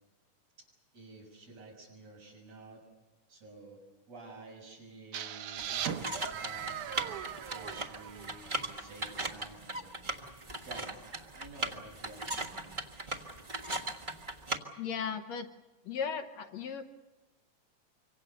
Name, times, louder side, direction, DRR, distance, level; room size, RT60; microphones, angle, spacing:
voice 1, 0.9-2.8 3.3-3.8 4.1-7.2 7.5-10.1 10.6-12.8, right 3 dB, 55° right, 1 dB, 7.6 m, -51 dB
sound 1, 5.1-8.9, right 9 dB, 85° right, 2.6 m, -39 dB
sound 2, 5.6-14.6, right 2 dB, 35° right, 0.7 m, -39 dB
voice 2, 14.8-15.5 15.9-16.8, left 6 dB, 70° left, 8 dB, 2.1 m, -36 dB
25.5 x 25.0 x 6.8 m, 1.1 s
omnidirectional pair, 3.5 m